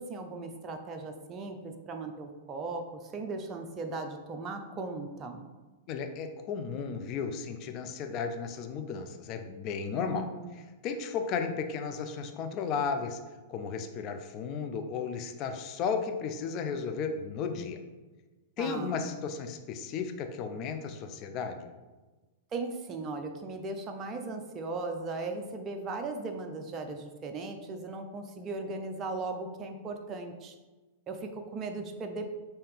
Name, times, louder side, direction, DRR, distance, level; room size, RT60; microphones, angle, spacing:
voice 1, 0.0-5.5 10.0-10.6 18.6-19.0 22.5-30.5 31.1-32.3, right 3 dB, 30° right, 4 dB, 0.5 m, -37 dB
voice 2, 5.9-10.3 10.8-13.2 13.5-17.8 18.6-21.7, left 5 dB, 40° left, 6 dB, 0.6 m, -34 dB
5.5 x 2.7 x 3.5 m, 1.2 s
hypercardioid pair, 110°, 0 cm